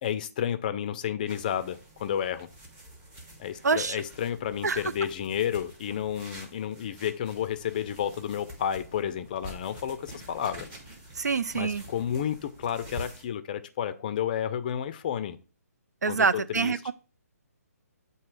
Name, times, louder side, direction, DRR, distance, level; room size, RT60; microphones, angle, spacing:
voice 1, 0.0-2.5 3.4-10.7 11.5-15.4 16.1-16.7, left 9 dB, 30° left, 0.4 m, -31 dB
sound 1, 1.3-13.3, right 1 dB, 15° right, 1.1 m, -47 dB
voice 2, 3.6-4.0 4.6-4.8 11.1-11.8 16.0-16.9, right 5 dB, 85° right, 0.4 m, -26 dB
8.4 x 2.8 x 4.6 m
hypercardioid pair, 155°, 9 cm